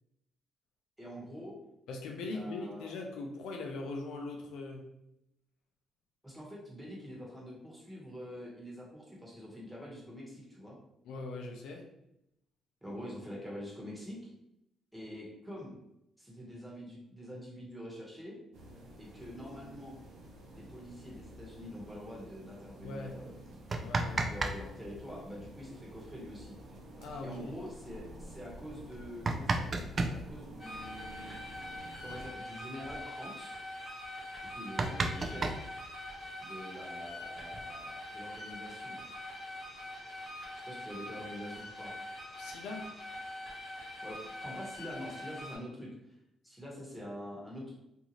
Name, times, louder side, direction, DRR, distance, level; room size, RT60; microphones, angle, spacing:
voice 1, 1.0-1.6 2.2-2.9 6.2-10.8 12.8-14.2 14.9-15.7 16.2-18.4 19.0-20.0 20.5-23.3 24.2-26.6 27.2-31.3 32.0-33.6 34.5-35.6 36.4-39.0 40.7-42.0 44.0-46.2 46.4-47.7, equal, 5° right, -4 dB, 1.1 m, -45 dB
voice 2, 1.9-4.9 11.0-11.9 22.8-23.2 23.8-24.4 27.0-27.6 42.4-42.8, left 3 dB, 85° left, 2 dB, 0.4 m, -41 dB
sound 1, 18.5-32.3, right 1 dB, 85° right, 0.6 m, -51 dB
sound 2, 23.5-24.6 24.8-24.9 26.7-26.8 27.1-27.2 27.9-28.0 28.8-30.2 31.7-31.8 32.1-32.3 32.6-33.0 33.5-33.6 34.0-34.1 34.4-36.3 37.2-38.1, right 3 dB, 40° right, 0.3 m, -33 dB
sound 3, 30.6-45.6, left 1 dB, 30° left, 1.3 m, -44 dB
2.6 x 2.4 x 3.0 m, 0.83 s
cardioid pair, 90°, 0 cm